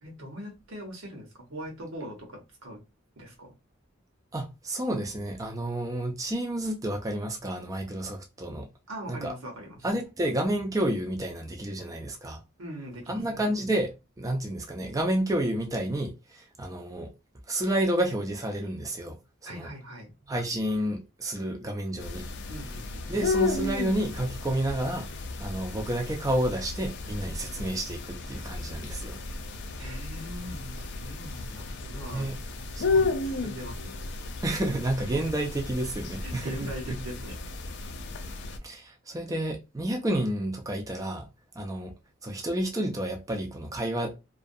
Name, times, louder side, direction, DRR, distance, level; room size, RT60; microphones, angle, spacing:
voice 1, 0.0-2.8 3.2-3.5 8.9-9.8 12.6-13.4 19.4-20.1 22.5-23.1 29.8-32.3 32.8-34.0 36.2-37.4, right 1 dB, 90° right, 1.0 m, -41 dB
voice 2, 4.3-8.7 9.1-9.3 9.8-12.4 13.1-17.1 17.5-19.2 19.5-19.7 20.3-22.3 23.1-25.1 25.4-29.2 32.1-32.4 32.8-33.0 34.4-36.9 38.6-41.3 41.6-41.9 42.2-44.1, right 1 dB, 15° right, 0.4 m, -30 dB
sound 1, 22.0-38.6, left 3 dB, 60° left, 0.4 m, -33 dB
2.4 x 2.2 x 2.6 m
head